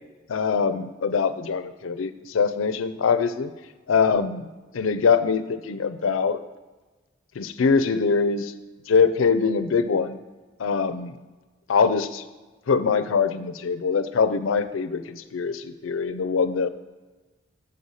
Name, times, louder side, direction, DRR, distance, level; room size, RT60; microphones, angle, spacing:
voice 1, 0.3-3.5 3.9-4.5 4.7-6.4 7.4-8.5 8.9-10.2 10.6-11.1 11.7-12.2 12.7-16.7, left 5 dB, 90° left, 12 dB, 0.5 m, -23 dB
6.7 x 5.4 x 6.4 m, 1.2 s
head